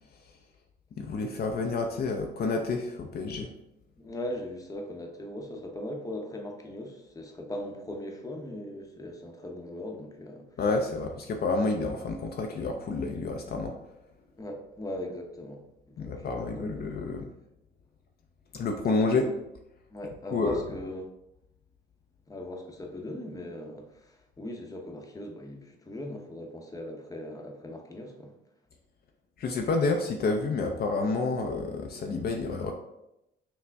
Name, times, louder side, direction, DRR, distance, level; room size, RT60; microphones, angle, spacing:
voice 1, 1.0-3.5 10.6-13.8 16.0-17.3 18.5-19.3 20.3-20.6 29.4-32.7, left 3 dB, 50° left, 3 dB, 0.5 m, -29 dB
voice 2, 4.0-10.5 14.4-15.6 15.9-16.9 19.1-19.3 19.9-21.0 22.3-28.3, left 1 dB, 15° left, 2 dB, 0.8 m, -39 dB
5.9 x 2.1 x 3.4 m, 0.86 s
cardioid pair, 90°, 20 cm